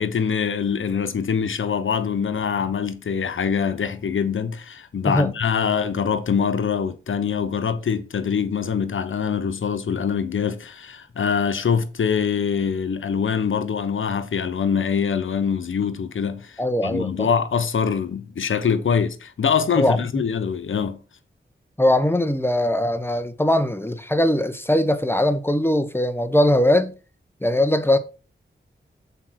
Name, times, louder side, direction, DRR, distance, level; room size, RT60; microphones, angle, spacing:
voice 1, 0.0-21.0, left 6 dB, 85° left, 0.9 m, -24 dB
voice 2, 16.6-17.3 19.7-20.2 21.8-26.9 27.4-28.0, left 1 dB, 10° left, 1.0 m, -20 dB
6.9 x 4.5 x 5.9 m
cardioid pair, 55°, 20 cm